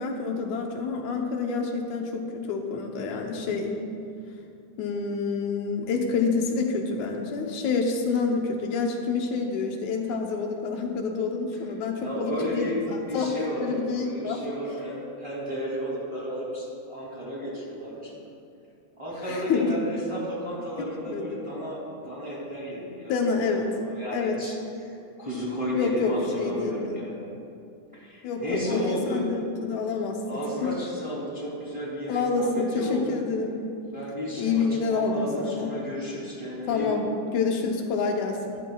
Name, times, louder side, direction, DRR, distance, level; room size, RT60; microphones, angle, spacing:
voice 1, 0.0-3.8 4.8-13.3 13.6-14.4 19.3-19.8 21.1-21.4 23.1-23.7 24.1-24.4 25.8-27.0 28.2-30.8 32.1-33.5 34.4-35.7 36.7-37.1 37.3-38.6, left 4 dB, 80° left, 2 dB, 2.2 m, -28 dB
voice 2, 12.0-18.1 19.0-24.5 24.8-27.3 27.9-29.3 30.2-33.2 33.9-37.0, equal, 10° right, -7 dB, 2.3 m, -33 dB
13.5 x 12.5 x 2.3 m, 2.5 s
omnidirectional pair, 3.3 m